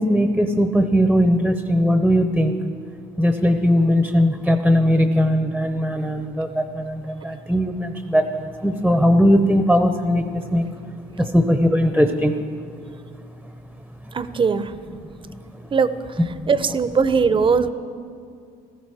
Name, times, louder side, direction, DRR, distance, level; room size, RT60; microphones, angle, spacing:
voice 1, 0.0-2.6 3.2-10.7 11.2-12.4, equal, ahead, 7 dB, 0.7 m, -19 dB
voice 2, 14.1-14.7 15.7-15.9 16.5-17.7, right 5 dB, 30° right, 13 dB, 0.7 m, -19 dB
16.0 x 13.5 x 4.9 m, 2.3 s
cardioid pair, 110°, 17 cm